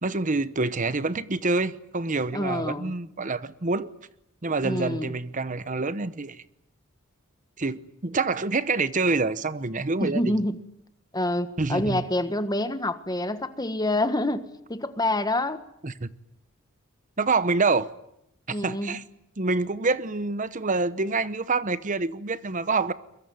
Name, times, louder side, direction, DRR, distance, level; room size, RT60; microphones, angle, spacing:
voice 1, 0.0-3.9 4.4-6.4 7.6-10.3 11.6-12.1 15.8-16.1 17.2-17.9 18.6-19.0 19.4-22.9, right 3 dB, 40° right, 1.0 m, -26 dB
voice 2, 2.3-2.9 4.6-5.2 10.0-10.6 11.1-15.6 18.5-19.0, left 1 dB, 20° left, 1.5 m, -27 dB
23.0 x 22.5 x 9.5 m
head